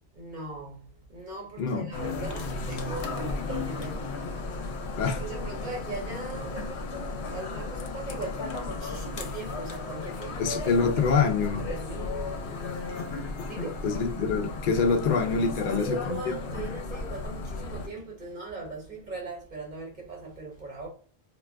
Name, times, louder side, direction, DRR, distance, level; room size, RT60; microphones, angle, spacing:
voice 1, 0.1-11.4 11.7-12.4 12.8-13.0 13.4-13.9 15.6-20.9, right 2 dB, 50° right, 0.8 m, -39 dB
voice 2, 1.6-1.9 5.0-5.2 10.4-11.6 13.8-16.7, left 5 dB, 55° left, 0.6 m, -26 dB
sound 1, 1.9-17.9, left 3 dB, 80° left, 0.9 m, -35 dB
2.4 x 2.2 x 3.2 m
omnidirectional pair, 1.1 m